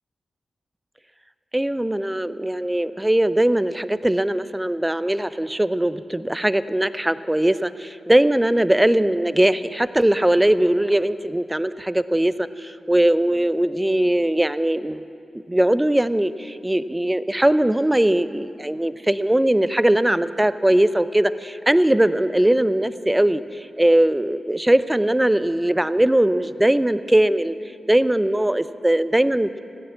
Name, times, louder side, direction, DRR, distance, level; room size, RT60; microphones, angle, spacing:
voice 1, 1.5-15.1 15.5-27.6 27.9-29.6, right 1 dB, 15° right, 14 dB, 0.6 m, -20 dB
15.5 x 10.0 x 7.4 m, 2.5 s
supercardioid pair, 40°, 0 cm